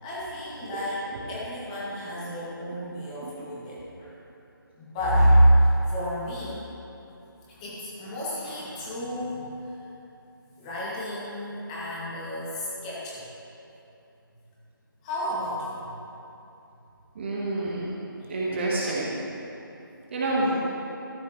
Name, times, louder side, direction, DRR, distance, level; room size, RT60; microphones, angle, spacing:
voice 1, 0.0-4.1 4.8-6.6 7.5-9.6 10.6-13.2 15.0-15.9 18.2-18.5, equal, 15° left, -8 dB, 2.2 m, -27 dB
voice 2, 17.1-17.9 18.3-19.2 20.1-20.5, right 2 dB, 30° right, -5 dB, 1.4 m, -28 dB
13.5 x 9.8 x 3.2 m, 2.9 s
figure-of-eight pair, 155°, 12 cm